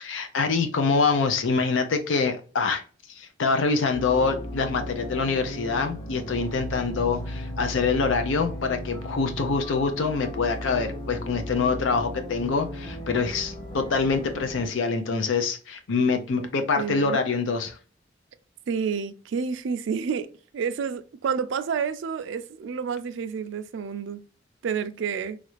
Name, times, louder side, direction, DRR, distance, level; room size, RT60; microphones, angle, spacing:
voice 1, 0.0-2.8 3.2-17.8, left 4 dB, 70° left, 0.5 m, -25 dB
sound 1, 3.9-14.7, equal, 25° left, 0.8 m, -36 dB
voice 2, 16.8-17.2 18.7-20.3 20.5-24.2 24.6-25.4, right 6 dB, 70° right, 0.4 m, -29 dB
3.1 x 2.5 x 3.0 m
head